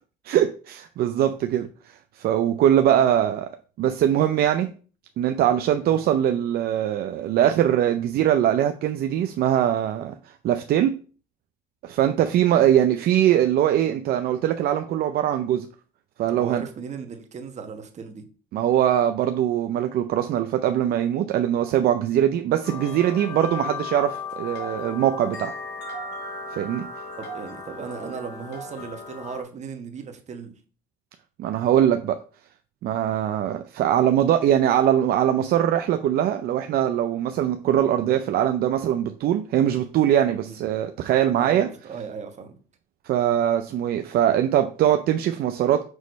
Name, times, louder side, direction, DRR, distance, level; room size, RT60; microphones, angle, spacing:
voice 1, 0.2-3.5 3.8-4.7 5.2-11.0 11.8-15.7 16.2-16.6 18.5-25.5 26.5-26.9 31.4-32.2 32.8-41.7 43.0-45.8, right 11 dB, 65° right, 0.5 m, -22 dB
voice 2, 5.8-6.2 16.3-18.3 27.2-30.5 40.3-40.6 41.3-42.6, right 6 dB, 45° right, 1.3 m, -37 dB
sound 1, 22.6-29.4, left 4 dB, 85° left, 1.9 m, -36 dB
6.3 x 3.1 x 5.2 m
cardioid pair, 110°, 17 cm